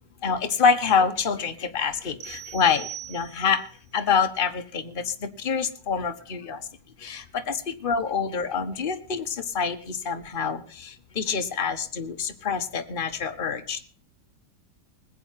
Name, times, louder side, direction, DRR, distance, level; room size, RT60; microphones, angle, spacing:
voice 1, 0.2-3.6 3.9-6.6 7.0-13.8, left 6 dB, 30° left, 7 dB, 1.5 m, -26 dB
sound 1, 2.2-3.7, right 11 dB, 60° right, 1.4 m, -40 dB
20.0 x 9.0 x 5.8 m, 0.43 s
omnidirectional pair, 2.0 m